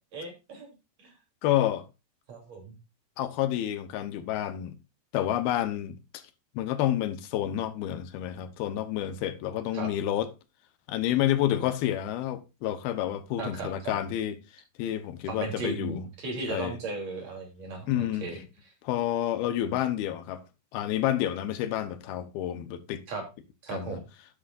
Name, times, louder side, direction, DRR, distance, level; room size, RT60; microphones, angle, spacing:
voice 1, 0.1-0.7 1.0-1.1 2.3-2.8 9.7-9.9 13.4-14.0 15.3-18.4 23.1-23.2 23.6-24.0, right 3 dB, 45° right, 4.3 m, -36 dB
voice 2, 1.4-1.9 3.2-4.8 5.1-6.2 6.5-10.3 10.9-14.3 14.8-16.0 16.5-16.8 17.9-18.4 18.8-20.4 20.7-23.0 23.7-24.0, left 12 dB, 85° left, 2.9 m, -29 dB
11.5 x 10.0 x 2.5 m
omnidirectional pair, 4.3 m